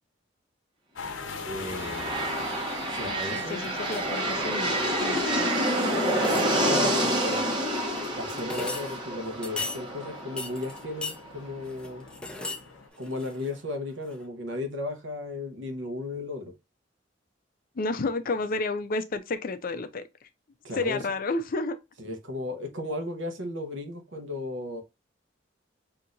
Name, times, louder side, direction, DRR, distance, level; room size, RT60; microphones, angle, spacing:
sound 1, 0.9-12.9, left 4 dB, 85° left, 0.7 m, -43 dB
sound 2, 1.4-11.3, right 1 dB, 25° right, 1.2 m, -28 dB
voice 1, 1.4-2.5 2.9-3.7 6.2-7.4 8.2-12.1 13.0-16.5 20.6-21.0 22.0-24.8, left 2 dB, 75° right, 1.1 m, -35 dB
voice 2, 3.0-5.5 17.8-20.0 20.7-21.8, left 3 dB, 50° left, 0.5 m, -31 dB
sound 3, 3.9-4.2 5.7-5.8 6.1-6.8 7.7-9.0 9.4-9.8 10.4-11.2 11.6-12.6 12.9-13.7 14.1-14.2, left 3 dB, 5° left, 0.6 m, -37 dB
5.9 x 2.8 x 2.5 m
head